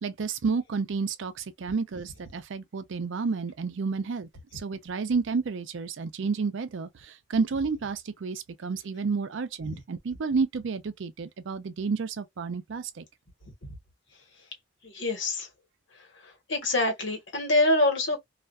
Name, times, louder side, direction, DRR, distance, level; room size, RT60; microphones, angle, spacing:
voice 1, 0.0-13.0, right 4 dB, 70° right, 0.5 m, -31 dB
voice 2, 14.8-15.5 16.1-18.2, left 2 dB, 70° left, 1.2 m, -25 dB
2.4 x 2.2 x 2.4 m
head